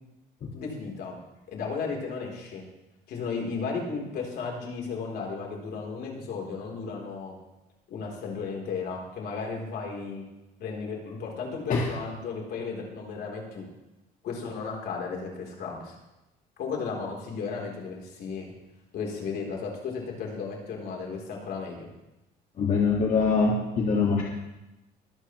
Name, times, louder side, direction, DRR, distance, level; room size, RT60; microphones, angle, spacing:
voice 1, 0.5-1.2 1.5-2.6 3.1-7.4 7.9-10.2 10.6-13.7 14.2-16.0 16.6-18.5 18.9-21.9, left 5 dB, 70° left, 0 dB, 3.8 m, -34 dB
voice 2, 22.6-24.2, left 4 dB, 50° left, -2 dB, 2.0 m, -23 dB
24.0 x 8.6 x 3.2 m, 0.97 s
cardioid pair, 110°, 17 cm